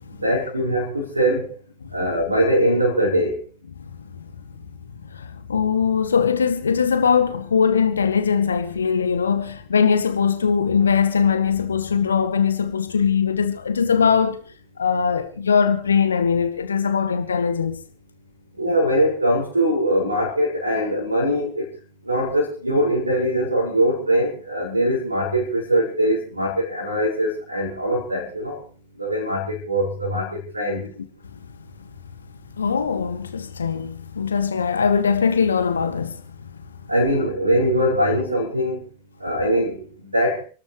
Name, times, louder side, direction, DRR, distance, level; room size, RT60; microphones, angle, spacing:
voice 1, 0.2-1.6 1.9-3.4 18.6-21.7 22.1-28.6 29.0-30.8 36.9-38.8 39.2-39.8 40.1-40.4, equal, 85° right, 5.5 m, -22 dB
voice 2, 5.1-14.4 14.8-17.8 32.5-36.2, left 6 dB, 70° left, 1.8 m, -21 dB
30.0 x 12.5 x 3.2 m
figure-of-eight pair, 90°, 0 cm